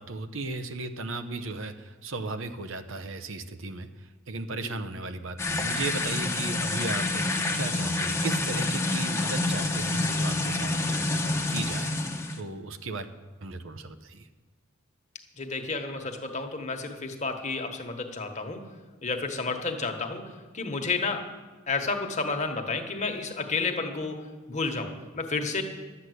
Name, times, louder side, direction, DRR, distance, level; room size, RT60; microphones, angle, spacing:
voice 1, 0.0-11.9 12.3-13.1 13.4-14.3, right 3 dB, 75° right, 9 dB, 0.9 m, -36 dB
sound 1, 5.4-12.4, left 2 dB, 15° left, 1.0 m, -28 dB
voice 2, 15.3-18.7 19.0-21.3 21.7-25.6, left 4 dB, 35° left, 4 dB, 1.4 m, -31 dB
12.0 x 8.2 x 8.0 m, 1.4 s
head